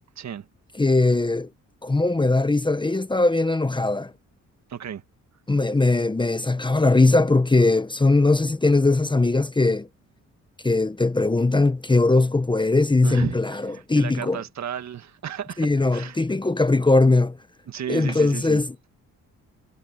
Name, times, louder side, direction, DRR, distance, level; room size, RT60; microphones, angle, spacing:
voice 1, 0.2-0.5 4.7-5.0 13.0-16.2 17.7-18.6, right 9 dB, 60° right, 1.7 m, -34 dB
voice 2, 0.8-1.5 1.8-4.1 5.5-9.9 10.6-14.4 15.6-17.4 17.9-18.7, left 2 dB, 15° left, 1.1 m, -20 dB
cardioid pair, 100°, 32 cm